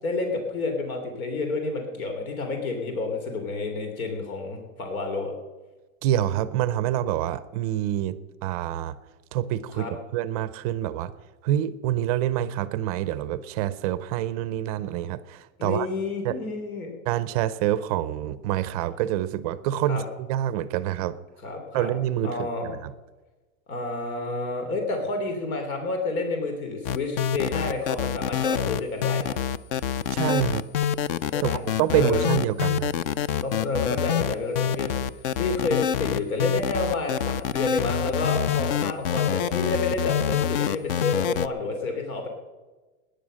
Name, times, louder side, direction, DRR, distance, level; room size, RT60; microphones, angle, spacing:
voice 1, 0.0-5.3 9.8-9.9 15.6-16.9 19.9-20.0 21.4-21.9 22.2-22.7 23.7-29.4 31.3-31.6 31.9-32.3 33.4-35.0 35.4-42.3, left 3 dB, 90° left, 4 dB, 3.3 m, -29 dB
voice 2, 6.0-9.0 9.3-11.1 11.4-15.9 16.2-16.4 17.1-21.2 21.7-22.3 22.6-22.9 30.1-30.7 31.4-31.5 31.8-32.9, right 12 dB, 30° right, 15 dB, 0.5 m, -26 dB
sound 1, 26.8-41.5, left 9 dB, 45° left, 0.5 m, -26 dB
18.5 x 10.5 x 6.3 m, 1.2 s
supercardioid pair, 165°, 41 cm